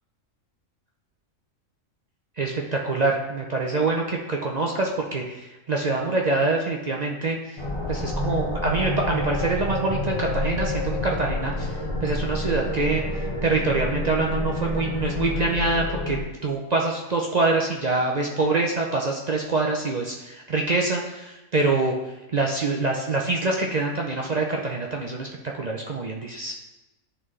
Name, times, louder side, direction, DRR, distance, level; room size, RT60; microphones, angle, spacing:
voice 1, 2.4-7.4 7.9-13.0 13.4-21.9 22.3-25.3 25.5-26.5, right 3 dB, 55° right, 0 dB, 0.4 m, -25 dB
sound 1, 7.6-16.2, left 1 dB, 30° left, 0.6 m, -28 dB
10.5 x 3.7 x 3.2 m, 1.0 s
omnidirectional pair, 1.4 m